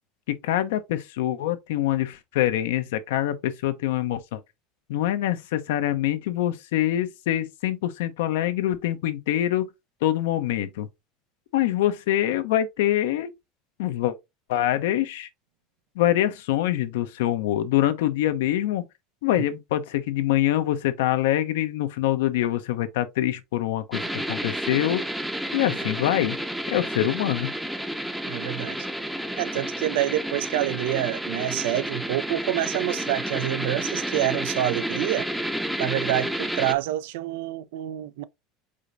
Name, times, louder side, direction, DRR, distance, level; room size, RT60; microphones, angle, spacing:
voice 1, 0.3-4.4 4.9-9.7 10.0-10.9 11.5-13.3 13.8-14.1 14.5-15.3 16.0-18.9 19.2-25.0 25.5-26.4 26.7-27.5, left 13 dB, 85° left, 0.7 m, -25 dB
sound 1, 23.9-36.7, equal, ahead, 0.6 m, -30 dB
voice 2, 28.2-28.8 29.4-35.3 35.8-38.2, right 14 dB, 80° right, 0.4 m, -27 dB
4.9 x 3.9 x 2.6 m
supercardioid pair, 120°, 0 cm